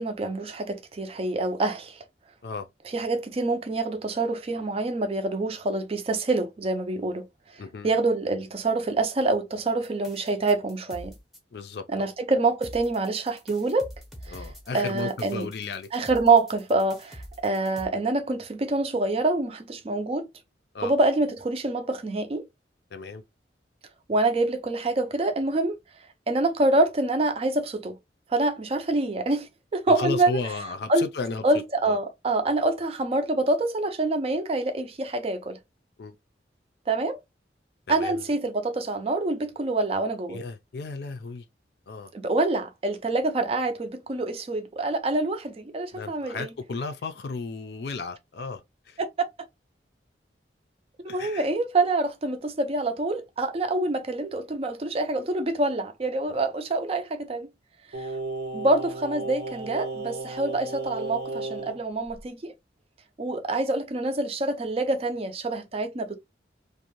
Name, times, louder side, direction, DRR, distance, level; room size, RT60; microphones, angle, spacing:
voice 1, 0.0-2.0 2.9-7.2 7.5-11.1 11.9-13.9 14.2-14.4 14.7-15.5 15.9-20.3 20.8-22.5 24.1-25.8 26.3-28.0 28.3-30.4 30.9-31.1 31.4-35.6 36.9-37.2 37.9-40.4 42.1-46.5 49.0-49.1 51.0-57.5 58.0-58.1 58.5-62.5 63.2-66.1, right 2 dB, 35° right, 0.4 m, -26 dB
voice 2, 7.6-8.0 11.5-12.1 14.3-15.9 20.7-20.9 22.9-23.2 29.9-31.4 31.8-32.0 36.0-36.2 37.9-38.3 40.3-41.4 41.9-42.1 45.9-49.0 51.1-51.5 56.3-56.4, left 4 dB, 65° left, 0.4 m, -34 dB
sound 1, 9.8-11.4 12.6-17.9, equal, ahead, 0.7 m, -45 dB
Singing, 57.9-61.8 62.1-62.2, right 2 dB, 75° right, 0.6 m, -34 dB
2.6 x 2.1 x 2.9 m
head